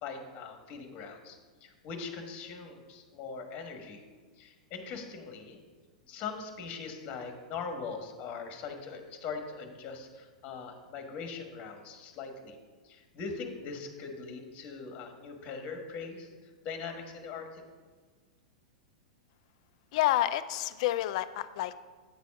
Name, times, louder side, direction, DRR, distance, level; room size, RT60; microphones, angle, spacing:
voice 1, 0.0-4.0 4.4-5.6 6.1-12.6 12.8-17.6, left 5 dB, 40° left, 5 dB, 1.3 m, -41 dB
voice 2, 19.9-21.8, left 14 dB, 55° left, 14 dB, 0.4 m, -29 dB
8.5 x 4.2 x 5.9 m, 1.4 s
hypercardioid pair, 105°, 4 cm